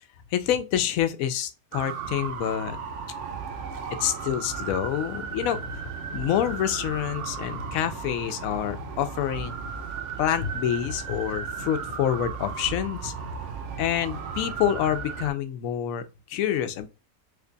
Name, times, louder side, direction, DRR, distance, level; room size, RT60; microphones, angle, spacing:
voice 1, 0.3-2.8 4.0-9.6 10.2-13.1 13.8-16.9, left 10 dB, 75° left, 1.0 m, -27 dB
sound 1, 1.7-15.3, right 6 dB, 65° right, 0.8 m, -35 dB
3.2 x 2.3 x 3.8 m
omnidirectional pair, 1.5 m